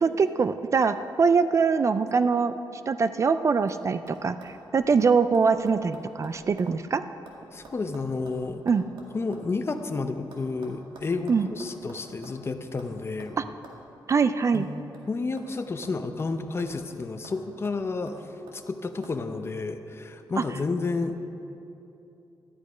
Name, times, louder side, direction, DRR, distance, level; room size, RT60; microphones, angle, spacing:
voice 1, 0.0-2.5 2.9-7.0 8.7-8.8 11.3-11.5 13.4-13.5 14.1-14.7 20.4-20.5, right 5 dB, 40° right, 12 dB, 0.4 m, -23 dB
sound 1, 2.9-3.3 3.7-3.8 4.1-6.8 7.0-9.8 10.3-12.4 12.8-12.9 13.2-13.3 13.6-13.8 14.1-14.2 14.5-15.6 15.8-16.9 17.2-17.4 17.6-18.6 19.0-19.2, right 2 dB, 85° right, 2.0 m, -49 dB
voice 2, 7.5-8.6 9.1-13.4 14.5-14.7 15.1-18.2 18.5-21.3, left 3 dB, 30° left, 8 dB, 0.7 m, -31 dB
13.0 x 10.5 x 5.0 m, 2.8 s
wide cardioid pair, 125°, 8 cm